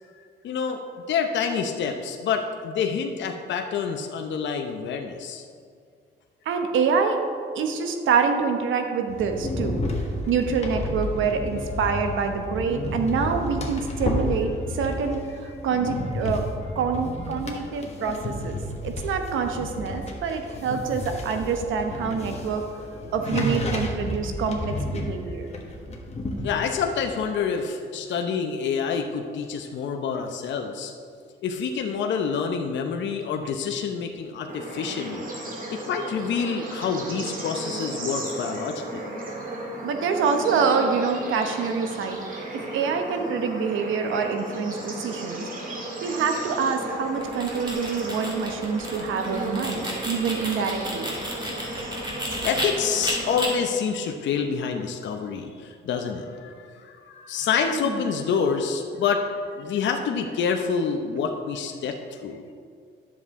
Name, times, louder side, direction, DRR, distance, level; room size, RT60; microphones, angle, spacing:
voice 1, 0.4-0.8 1.1-5.4 26.4-30.9 31.4-35.2 35.8-39.1 52.4-56.5 57.1-59.3 59.5-62.4, left 6 dB, 65° left, 3 dB, 0.8 m, -27 dB
voice 2, 6.4-7.2 7.5-9.8 10.3-16.4 16.7-22.6 23.1-25.5 39.8-42.2 42.5-45.5 46.0-51.1 57.7-58.0, right 5 dB, 80° right, 6 dB, 1.0 m, -26 dB
sound 1, 9.1-27.2, left 1 dB, 35° left, 1.3 m, -32 dB
Bird / Insect / Frog, 34.5-53.4, right 1 dB, 45° right, 1.9 m, -35 dB
sound 2, 47.1-52.7 53.0-53.5, right 1 dB, 20° right, 2.4 m, -32 dB
10.5 x 7.2 x 3.7 m, 2.2 s
cardioid pair, 90°, 20 cm